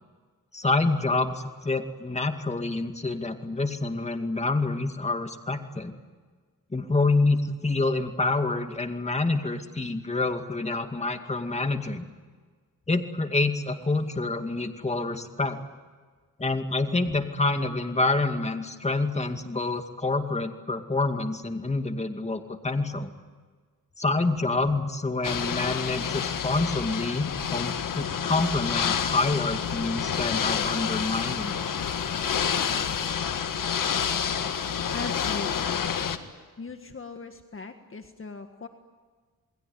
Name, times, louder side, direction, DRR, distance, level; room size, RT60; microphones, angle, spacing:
voice 1, 0.5-5.9 6.7-12.0 12.9-15.6 16.4-23.1 24.0-31.6, left 3 dB, 20° left, 6 dB, 2.3 m, -27 dB
Ocean / Boat Water vehicle, 25.2-36.2, left 7 dB, 75° left, 1.7 m, -28 dB
voice 2, 34.9-35.9 36.6-38.7, left 4 dB, 40° left, 6 dB, 1.7 m, -39 dB
28.0 x 21.0 x 9.7 m, 1.5 s
cardioid pair, 85°, 33 cm